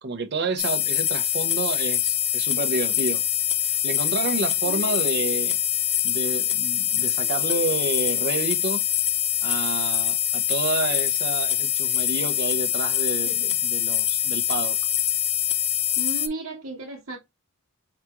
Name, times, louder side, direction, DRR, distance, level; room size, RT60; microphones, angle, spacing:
voice 1, 0.0-3.2 3.6-5.6 6.0-8.8 9.4-14.8, right 3 dB, 50° right, 0.7 m, -29 dB
sound 1, 0.6-16.3, left 10 dB, 30° left, 0.3 m, -24 dB
voice 2, 16.0-17.2, right 2 dB, 75° right, 1.1 m, -35 dB
4.8 x 2.3 x 2.8 m
head